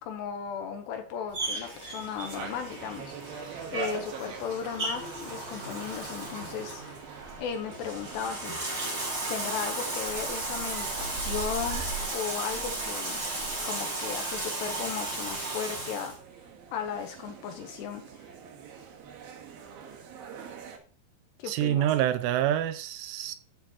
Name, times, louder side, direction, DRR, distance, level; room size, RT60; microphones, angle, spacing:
voice 1, 0.0-3.4 3.7-6.8 7.4-8.8 9.3-11.8 12.1-13.2 13.6-16.1 16.7-18.3 21.4-21.9, left 7 dB, 75° left, 2.7 m, -36 dB
Bathtub (filling or washing), 1.3-16.2, right 2 dB, 20° right, 6.2 m, -35 dB
sound 1, 2.2-20.8, right 5 dB, 65° right, 2.7 m, -44 dB
voice 2, 21.4-23.4, right 12 dB, 85° right, 3.1 m, -27 dB
13.5 x 7.8 x 2.9 m
omnidirectional pair, 5.7 m